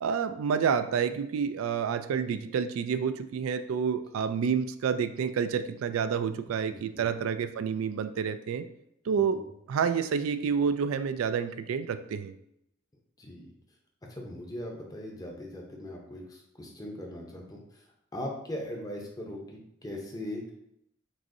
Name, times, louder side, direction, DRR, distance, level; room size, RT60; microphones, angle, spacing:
voice 1, 0.0-8.7 9.1-9.4 9.7-12.3, right 6 dB, 80° right, 11 dB, 0.3 m, -29 dB
voice 2, 6.7-7.1 9.4-9.5 13.2-13.4 14.1-17.8 18.1-20.5, left 1 dB, 20° left, 0 dB, 0.7 m, -40 dB
6.2 x 2.6 x 2.6 m, 0.77 s
head